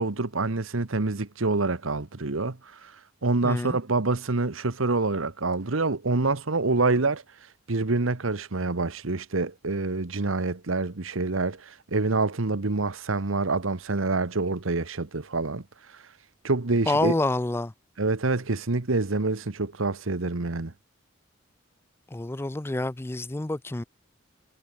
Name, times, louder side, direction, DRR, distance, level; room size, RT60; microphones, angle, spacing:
voice 1, 0.0-2.9 3.2-7.2 7.7-15.6 16.4-17.1 18.0-20.7, right 3 dB, 85° right, 1.2 m, -26 dB
voice 2, 3.4-3.8 16.9-17.7 22.1-23.8, left 2 dB, 10° left, 0.4 m, -27 dB
head